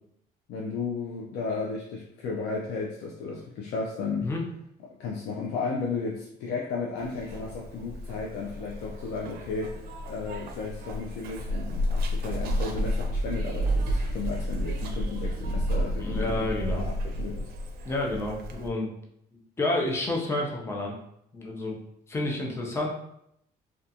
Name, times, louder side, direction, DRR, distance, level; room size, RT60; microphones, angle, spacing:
voice 1, 0.5-4.3 5.0-9.8 10.1-17.5, left 4 dB, 80° left, -2 dB, 0.4 m, -34 dB
Zipper (clothing), 7.0-18.7, equal, 65° right, 0.4 m, -31 dB
voice 2, 16.0-16.8 17.8-18.9 19.3-20.9 21.3-21.8 22.1-22.9, left 2 dB, 15° left, -1 dB, 0.5 m, -30 dB
2.4 x 2.3 x 2.7 m, 0.75 s
cardioid pair, 110°, 17 cm